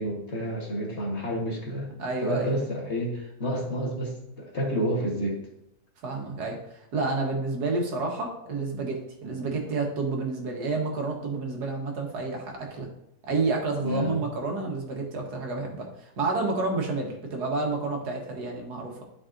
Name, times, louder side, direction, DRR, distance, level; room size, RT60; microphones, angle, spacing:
voice 1, 0.0-1.9 2.2-5.4 9.2-9.3 13.8-14.3, equal, 45° left, -1 dB, 1.5 m, -30 dB
voice 2, 2.0-2.6 6.0-6.6 6.9-12.9 13.2-19.0, right 3 dB, 70° right, 1 dB, 1.7 m, -29 dB
11.5 x 4.8 x 2.5 m, 0.79 s
omnidirectional pair, 1.8 m